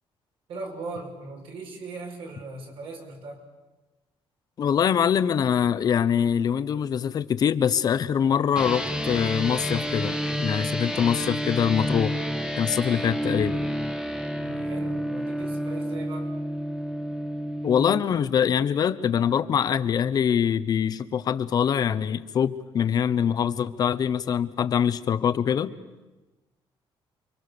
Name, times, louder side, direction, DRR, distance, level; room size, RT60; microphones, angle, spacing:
voice 1, 0.5-3.4 14.4-16.3, right 3 dB, 65° right, 2 dB, 5.8 m, -39 dB
voice 2, 4.6-12.2 12.5-13.6 17.6-25.7, left 8 dB, 45° left, 14 dB, 1.0 m, -24 dB
sound 1, 8.5-18.0, equal, 10° right, 1.5 m, -29 dB
29.0 x 24.5 x 6.9 m, 1.1 s
cardioid pair, 165°, 10 cm